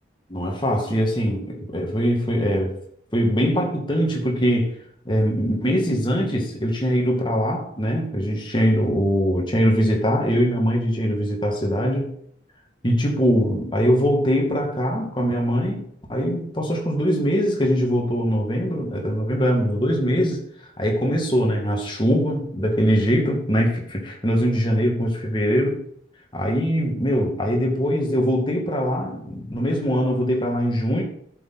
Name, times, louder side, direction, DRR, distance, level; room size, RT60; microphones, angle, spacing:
voice 1, 0.3-2.8 3.1-4.7 5.1-12.1 12.8-20.4 20.8-25.8 26.3-31.0, equal, 25° left, 0 dB, 2.3 m, -22 dB
12.5 x 7.1 x 4.2 m, 0.68 s
head